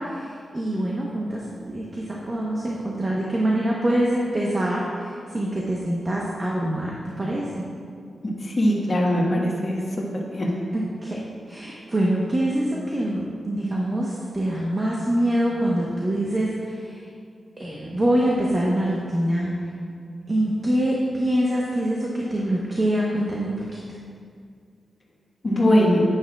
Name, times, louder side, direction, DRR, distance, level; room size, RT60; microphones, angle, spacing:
voice 1, 0.0-7.6 10.7-11.2 11.5-17.0 17.6-19.5 20.3-23.5, right 1 dB, 25° right, -4 dB, 1.0 m, -25 dB
voice 2, 8.2-10.0 10.4-10.5 25.4-26.0, equal, 40° left, -2 dB, 1.5 m, -21 dB
9.9 x 9.0 x 2.4 m, 2.2 s
wide cardioid pair, 120°, 0 cm